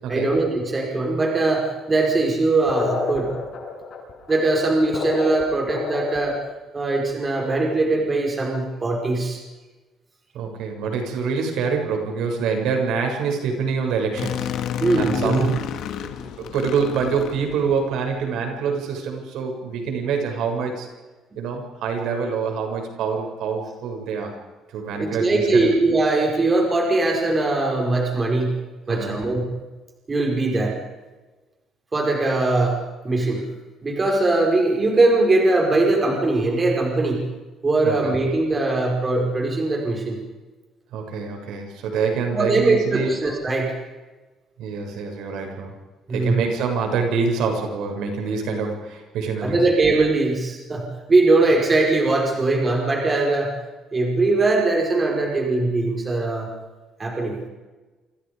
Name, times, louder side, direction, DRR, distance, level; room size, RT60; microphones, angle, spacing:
voice 1, 0.1-3.3 4.3-6.4 6.7-9.4 14.8-15.5 25.0-28.6 28.9-29.5 30.1-30.8 31.9-33.5 33.8-37.3 37.6-40.2 42.3-43.7 46.1-46.4 49.4-53.5 53.9-56.5 57.0-57.4, right 2 dB, 20° right, 1 dB, 5.1 m, -21 dB
sound 1, 2.7-6.4, left 4 dB, 45° left, 7.2 m, -29 dB
voice 2, 10.3-14.5 15.0-15.6 16.0-20.9 21.4-24.3 24.7-25.7 28.9-29.2 37.8-38.1 40.9-43.1 44.6-45.7 46.1-49.6, right 5 dB, 70° right, 3 dB, 7.2 m, -26 dB
sound 2, 14.2-18.1, left 9 dB, 65° left, 2.4 m, -30 dB
29.0 x 27.5 x 5.2 m, 1.2 s
cardioid pair, 160°, 0 cm